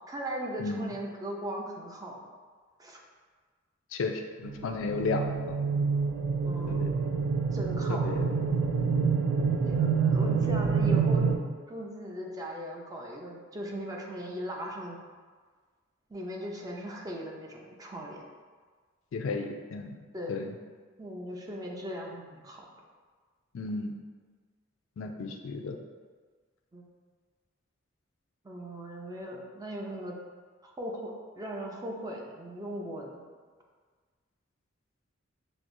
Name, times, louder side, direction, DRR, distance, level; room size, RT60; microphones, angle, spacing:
voice 1, 0.1-2.2 2.8-3.0 4.8-4.9 6.4-6.9 7.5-8.1 9.6-11.3 11.7-15.0 16.1-18.2 20.1-20.4 21.0-22.7 26.7-26.9 28.4-30.2 30.6-33.2, equal, 20° right, -1 dB, 0.4 m, -38 dB
voice 2, 0.6-0.9 3.9-5.6 6.7-6.9 7.9-8.3 19.1-19.9 20.3-20.5 23.5-23.9 25.0-25.8, left 3 dB, 70° left, 4 dB, 0.4 m, -33 dB
sound 1, 4.4-11.4, right 5 dB, 80° right, 0.4 m, -27 dB
5.9 x 2.0 x 2.5 m, 1.5 s
head